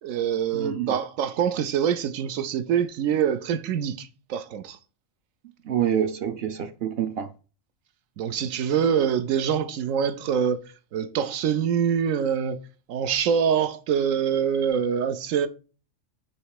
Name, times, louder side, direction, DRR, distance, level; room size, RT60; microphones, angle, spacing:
voice 1, 0.0-4.8 8.2-10.6 10.9-12.6 12.9-15.5, right 8 dB, 85° right, 1.0 m, -25 dB
voice 2, 0.5-0.9 5.6-7.3, right 9 dB, 60° right, 0.7 m, -27 dB
8.8 x 3.1 x 4.8 m
omnidirectional pair, 1.4 m